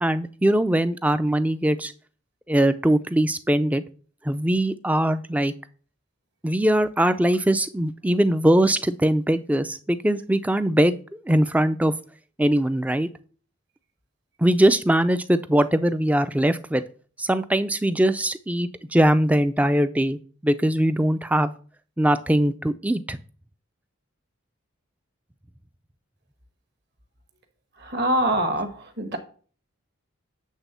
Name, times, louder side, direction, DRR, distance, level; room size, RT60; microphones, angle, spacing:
voice 1, 0.0-1.9 2.5-3.8 4.2-5.5 6.4-11.9 12.4-13.1 14.4-16.8 17.2-21.5 22.0-23.2, right 1 dB, 5° right, 12 dB, 0.3 m, -21 dB
voice 2, 27.8-29.2, right 1 dB, 55° right, 8 dB, 1.3 m, -24 dB
8.2 x 3.6 x 6.7 m, 0.41 s
head